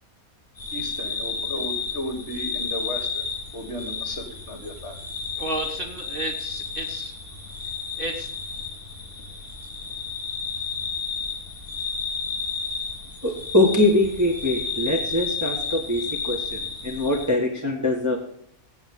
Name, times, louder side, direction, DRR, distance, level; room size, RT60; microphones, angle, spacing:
sound 1, 0.6-17.3, left 5 dB, 30° left, 4.8 m, -32 dB
voice 1, 0.7-3.3 3.5-5.0, left 1 dB, 50° left, 6 dB, 1.9 m, -34 dB
voice 2, 5.4-7.1 8.0-8.3, right 2 dB, 40° right, 4 dB, 1.4 m, -32 dB
voice 3, 13.2-18.2, left 2 dB, 10° right, -1 dB, 1.5 m, -23 dB
15.5 x 8.0 x 3.7 m, 0.67 s
omnidirectional pair, 1.6 m